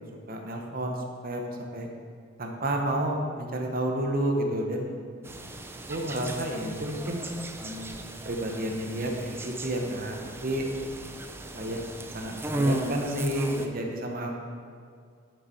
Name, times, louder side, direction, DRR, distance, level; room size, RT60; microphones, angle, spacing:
voice 1, 0.3-1.9 2.4-5.0 5.9-7.3 7.6-10.6 11.5-11.8 12.1-14.3, right 1 dB, 50° right, 2 dB, 1.1 m, -31 dB
sound 1, 5.2-13.7, right 1 dB, 10° right, 0.5 m, -35 dB
9.7 x 6.6 x 4.5 m, 2.2 s
head